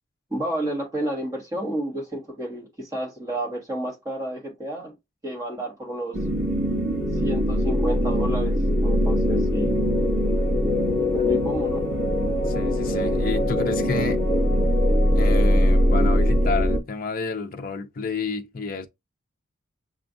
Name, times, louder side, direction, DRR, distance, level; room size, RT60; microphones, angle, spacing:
voice 1, 0.3-4.9 5.2-6.2 7.1-9.8 11.1-11.8, right 1 dB, 15° right, 1.3 m, -30 dB
sound 1, 6.1-16.8, equal, 75° right, 1.6 m, -21 dB
voice 2, 12.4-14.2 15.1-18.9, left 4 dB, 40° left, 0.5 m, -30 dB
6.7 x 2.5 x 2.5 m
head